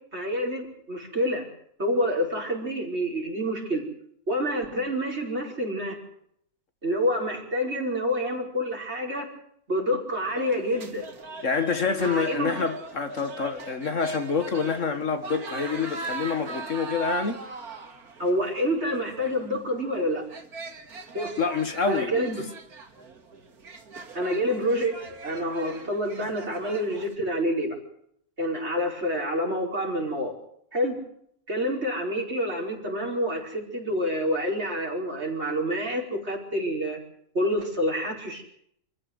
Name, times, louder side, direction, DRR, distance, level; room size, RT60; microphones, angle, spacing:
voice 1, 0.1-1.5 1.8-3.9 4.3-6.0 6.8-9.3 9.7-11.1 12.0-12.6 18.2-20.3 21.1-21.4 21.9-22.5 24.1-25.0 25.2-27.8 28.4-30.3 30.7-31.0 31.5-37.0 37.3-38.4, equal, 45° right, 5.4 m, -27 dB
sound 1, 10.3-27.1, right 4 dB, 80° right, 2.5 m, -40 dB
voice 2, 11.4-17.4 21.4-22.2, left 5 dB, 55° left, 1.9 m, -27 dB
26.5 x 15.0 x 8.0 m
omnidirectional pair, 1.6 m